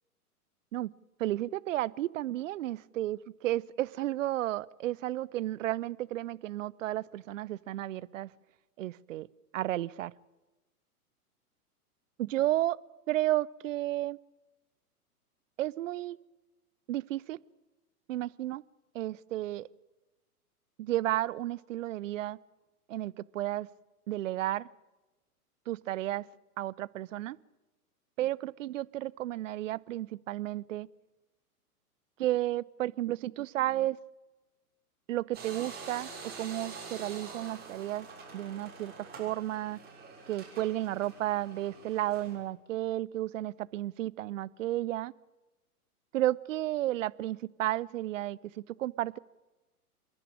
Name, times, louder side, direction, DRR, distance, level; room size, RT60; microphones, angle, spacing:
voice 1, 1.2-3.2 3.4-8.3 8.8-9.3 9.5-10.1 12.2-12.8 13.1-14.2 15.6-16.2 16.9-17.4 18.1-18.6 18.9-19.7 20.8-22.4 22.9-23.7 24.1-24.7 25.7-26.2 26.6-27.4 28.2-30.9 32.2-34.0 35.1-36.1 36.4-38.1 38.3-39.8 40.3-45.1 46.1-48.4 48.8-49.2, right 14 dB, 55° right, 22 dB, 0.6 m, -32 dB
sound 1, 35.3-42.3, right 4 dB, 20° right, 6.7 m, -46 dB
27.0 x 11.0 x 10.0 m, 1.1 s
figure-of-eight pair, 110°, 46 cm